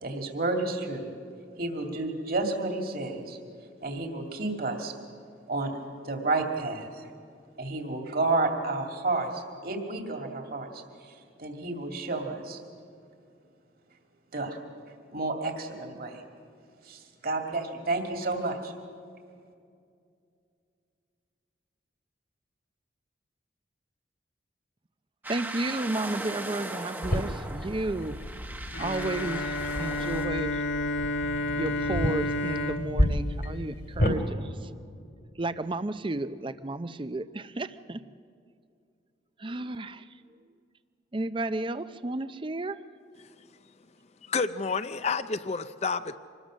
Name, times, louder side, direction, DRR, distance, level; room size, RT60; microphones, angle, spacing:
voice 1, 0.0-1.1 1.6-3.4 3.8-4.9 5.5-5.8 6.0-7.1 7.6-12.6 14.3-14.6 15.1-16.2 16.8-18.7, right 2 dB, 55° right, 2.4 m, -31 dB
sound 1, 25.2-30.3, right 2 dB, 10° right, 1.1 m, -38 dB
voice 2, 25.3-28.2 28.8-30.6 31.6-34.7 35.4-38.0 39.4-40.0 41.1-42.8, right 2 dB, 25° right, 0.6 m, -33 dB
sound 2, 27.0-34.2, equal, 60° left, 2.7 m, -32 dB
Bowed string instrument, 28.7-34.4, left 2 dB, 75° left, 1.8 m, -31 dB
voice 3, 44.3-46.1, left 4 dB, 35° left, 0.5 m, -29 dB
26.0 x 20.5 x 6.3 m
head